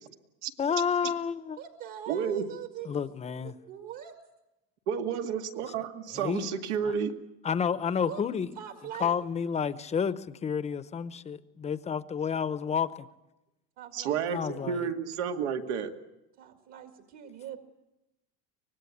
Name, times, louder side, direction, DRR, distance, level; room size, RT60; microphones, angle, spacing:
voice 1, 0.6-1.6 2.8-3.5 6.1-6.5 6.8-6.9 7.4-8.5 9.0-13.1 14.3-14.9, left 7 dB, 20° left, 14 dB, 0.8 m, -30 dB
voice 2, 1.6-3.0 3.4-4.2 8.0-8.2 8.6-9.1 13.8-14.8 16.4-17.6, right 11 dB, 55° right, 5 dB, 2.0 m, -43 dB
voice 3, 2.1-2.4 4.9-7.2 13.9-15.9, right 7 dB, 85° right, 5 dB, 2.2 m, -31 dB
24.5 x 19.5 x 8.5 m, 0.96 s
cardioid pair, 145°, 33 cm